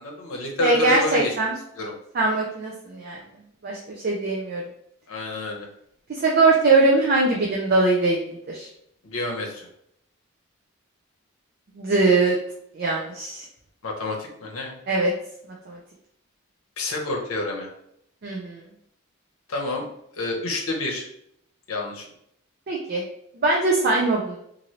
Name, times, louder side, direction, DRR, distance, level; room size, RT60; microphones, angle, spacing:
voice 1, 0.0-1.4 1.8-1.9 5.1-5.7 9.0-9.7 13.8-14.7 16.8-17.7 19.5-19.8 20.1-21.1 21.7-22.0, left 2 dB, 70° left, 0 dB, 0.7 m, -28 dB
voice 2, 0.6-1.5 2.1-3.2 3.6-3.8 4.0-4.6 6.1-8.2 8.5-8.7 11.8-12.4 12.8-13.4 14.9-15.1 15.7-15.8 18.2-18.6 22.7-23.0 23.4-24.4, right 3 dB, 45° right, -2 dB, 0.4 m, -21 dB
3.0 x 2.5 x 2.8 m, 0.71 s
head